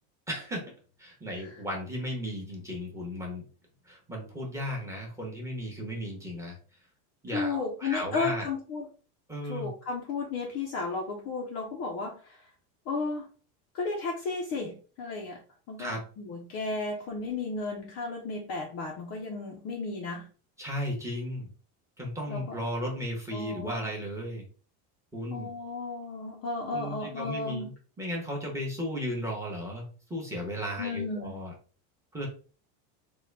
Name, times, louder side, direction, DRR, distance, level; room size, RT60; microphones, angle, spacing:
voice 1, 0.3-0.7 1.0-3.5 3.9-6.6 7.2-8.5 9.3-9.7 15.8-16.0 20.6-21.5 22.0-24.5 25.1-25.5 26.7-27.7 28.0-31.5 32.1-32.3, equal, 5° right, -1 dB, 0.8 m, -35 dB
voice 2, 7.3-8.9 9.5-12.5 12.9-13.3 13.7-15.4 15.7-20.3 22.3-22.6 23.3-23.9 25.3-27.7 30.8-31.4, left 3 dB, 35° left, 0 dB, 0.5 m, -34 dB
3.7 x 2.2 x 3.2 m, 0.39 s
supercardioid pair, 155°, 47 cm